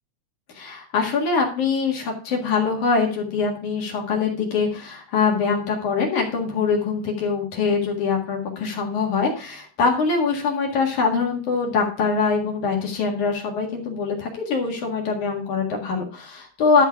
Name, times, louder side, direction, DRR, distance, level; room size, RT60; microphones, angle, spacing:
voice 1, 0.5-16.8, left 5 dB, 55° left, 0 dB, 2.9 m, -23 dB
12.0 x 4.6 x 5.7 m, 0.39 s
omnidirectional pair, 4.5 m